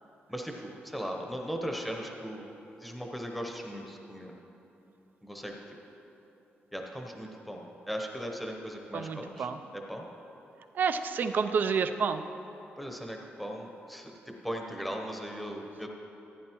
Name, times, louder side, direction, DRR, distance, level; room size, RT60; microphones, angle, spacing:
voice 1, 0.3-2.5 2.8-4.3 5.2-5.5 6.7-10.1 12.8-15.9, equal, ahead, 1 dB, 0.8 m, -38 dB
voice 2, 8.9-9.6 10.8-12.2, right 6 dB, 50° right, 9 dB, 0.4 m, -29 dB
14.5 x 9.6 x 3.0 m, 3.0 s
wide cardioid pair, 160°, 4 cm